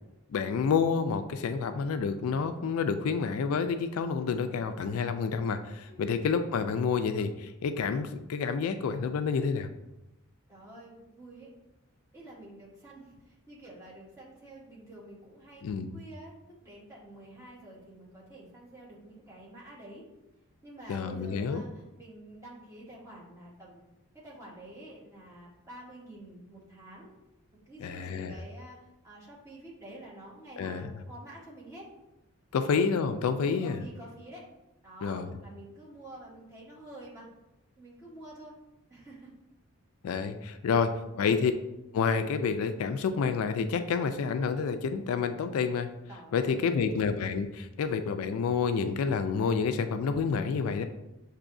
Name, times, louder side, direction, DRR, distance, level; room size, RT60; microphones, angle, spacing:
voice 1, 0.3-9.7 15.6-15.9 20.9-21.6 27.8-28.3 30.6-31.0 32.5-33.9 35.0-35.4 40.0-40.9 41.2-41.5 41.9-45.9 46.3-50.9, left 5 dB, 70° left, 9 dB, 0.3 m, -29 dB
voice 2, 5.9-6.2 10.5-11.5 12.1-13.1 13.5-16.4 16.6-20.0 20.6-23.8 24.2-27.1 27.7-31.9 32.5-32.8 33.4-34.5 34.8-37.3 37.8-38.6 38.9-39.3 40.6-41.1 46.1-46.8, right 1 dB, 15° right, -5 dB, 1.0 m, -48 dB
6.9 x 2.7 x 2.6 m, 0.95 s
head